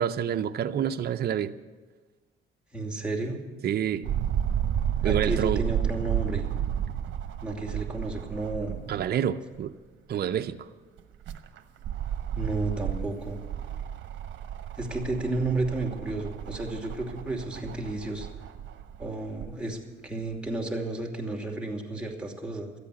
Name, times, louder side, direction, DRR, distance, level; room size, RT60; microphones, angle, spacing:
voice 1, 0.0-1.5 3.6-4.1 5.0-5.6 8.9-9.7 10.1-10.7, right 9 dB, 55° right, 0.6 m, -28 dB
voice 2, 2.7-3.4 5.0-6.5 7.4-8.8 12.4-13.4 14.8-18.3 19.0-22.7, right 2 dB, 5° right, 2.7 m, -32 dB
sound 1, 4.0-9.1 9.5-9.6 11.0-19.5 20.3-20.4, right 10 dB, 70° right, 1.0 m, -32 dB
13.5 x 8.5 x 10.0 m
cardioid pair, 90°, 20 cm